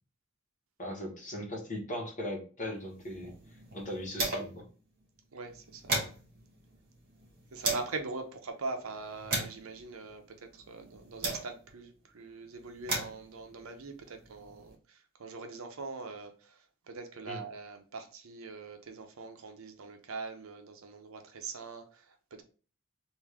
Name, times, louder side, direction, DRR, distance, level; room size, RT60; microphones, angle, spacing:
voice 1, 0.8-4.7 17.2-17.4, left 1 dB, 35° left, 1.3 m, -39 dB
sound 1, 2.9-4.7 5.0-5.1 5.4-8.0 8.6-11.8 12.5-14.7, right 2 dB, 45° right, 1.4 m, -37 dB
voice 2, 5.3-6.0 7.5-22.4, right 3 dB, 70° right, 0.6 m, -42 dB
3.5 x 2.6 x 3.3 m
head